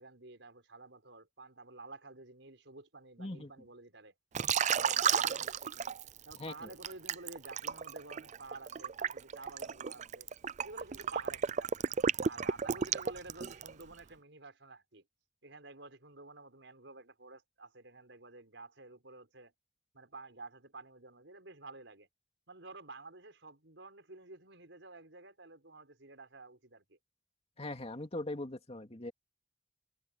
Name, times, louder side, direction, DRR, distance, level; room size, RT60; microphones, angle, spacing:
voice 1, 0.0-4.1 4.7-5.9 6.2-10.3 10.6-11.9 12.3-15.0 15.4-19.5 19.9-22.1 22.5-27.0, right 3 dB, 80° right, 5.1 m, -51 dB
voice 2, 3.2-3.5 6.4-6.7 27.6-29.1, left 2 dB, 35° left, 2.6 m, -40 dB
Liquid, 4.3-6.4 6.8-13.8, right 7 dB, 40° right, 0.5 m, -32 dB
head